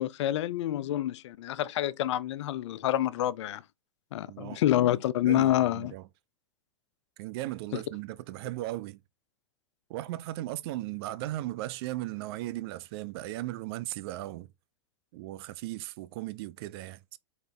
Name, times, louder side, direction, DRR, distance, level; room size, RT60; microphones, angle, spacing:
voice 1, 0.0-3.6 4.1-5.9, left 13 dB, 70° left, 0.4 m, -27 dB
voice 2, 4.3-4.6 5.2-6.1 7.2-9.0 9.9-14.5 15.1-17.2, right 16 dB, 55° right, 0.5 m, -37 dB
4.3 x 3.3 x 3.8 m
hypercardioid pair, 110°, 15 cm